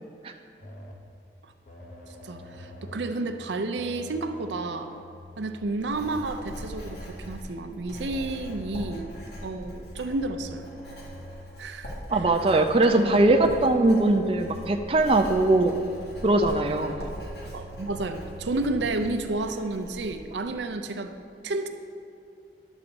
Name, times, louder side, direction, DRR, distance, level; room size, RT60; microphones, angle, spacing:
sound 1, 0.6-1.1 1.7-3.2 3.8-5.2 5.8-7.3 7.9-9.4 10.1-11.6 12.1-13.5 14.2-18.9, left 1 dB, 45° left, 0.8 m, -45 dB
voice 1, 2.2-4.9 5.4-9.1 9.4-10.7 11.6-12.2 12.9-13.2 17.5-21.1 21.4-21.7, right 2 dB, 90° right, 7 dB, 0.6 m, -31 dB
Writing, 5.3-20.5, equal, 70° left, 2.2 m, -42 dB
voice 2, 12.1-15.7 16.2-17.0, right 2 dB, 30° right, 5 dB, 0.4 m, -21 dB
11.0 x 4.0 x 6.9 m, 2.6 s
head